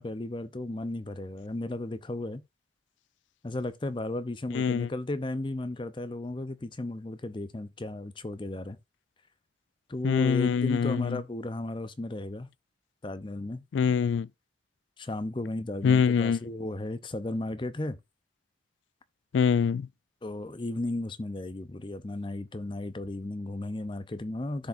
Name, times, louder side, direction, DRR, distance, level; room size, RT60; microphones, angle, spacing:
voice 1, 0.0-2.4 3.4-8.8 9.9-12.5 13.0-13.6 15.0-18.0 20.2-24.7, left 2 dB, 25° left, 0.6 m, -34 dB
voice 2, 4.5-4.9 10.0-11.2 13.7-14.3 15.8-16.4 19.3-19.9, left 6 dB, 85° left, 0.3 m, -24 dB
14.0 x 4.8 x 2.6 m
head